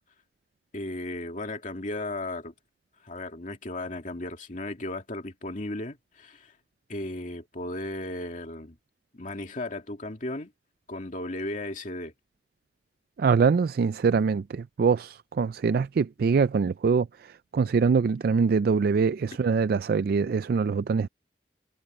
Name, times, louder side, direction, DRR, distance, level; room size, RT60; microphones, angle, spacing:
voice 1, 0.7-2.5 3.0-6.5 6.9-8.8 9.1-10.5 10.9-12.1, left 2 dB, 45° left, 2.3 m, -35 dB
voice 2, 13.2-21.1, right 5 dB, 60° right, 0.3 m, -24 dB
head